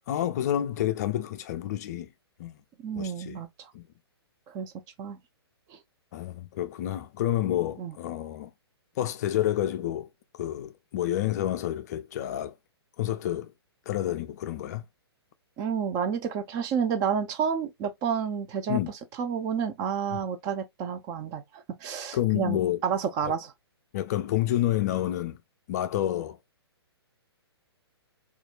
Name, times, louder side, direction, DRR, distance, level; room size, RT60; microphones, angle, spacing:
voice 1, 0.1-2.1 2.4-2.6 2.9-3.4 3.7-3.9 6.1-8.5 9.0-10.1 10.4-12.6 13.0-13.5 13.9-14.8 18.7-18.9 20.1-20.3 22.1-22.8 23.2-23.3 23.9-25.4 25.7-26.4, left 12 dB, 40° left, 0.4 m, -29 dB
voice 2, 2.8-3.7 4.5-4.7 5.0-5.2 5.7-5.8 7.8-7.9 15.6-18.8 19.2-23.5, right 7 dB, 25° right, 0.5 m, -30 dB
4.1 x 2.4 x 2.3 m
figure-of-eight pair, 125°, 14 cm